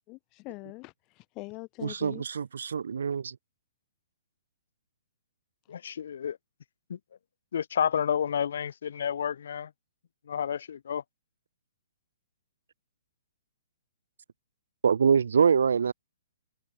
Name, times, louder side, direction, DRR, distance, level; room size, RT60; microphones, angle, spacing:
voice 1, 0.1-2.2, left 25 dB, 20° left, 1.0 m, -43 dB
voice 2, 1.8-3.3 14.8-15.9, right 6 dB, 80° right, 1.3 m, -24 dB
voice 3, 5.7-6.4 6.9-7.0 7.5-9.7 10.3-11.0, left 8 dB, 60° left, 1.6 m, -30 dB
hypercardioid pair, 170°, 0 cm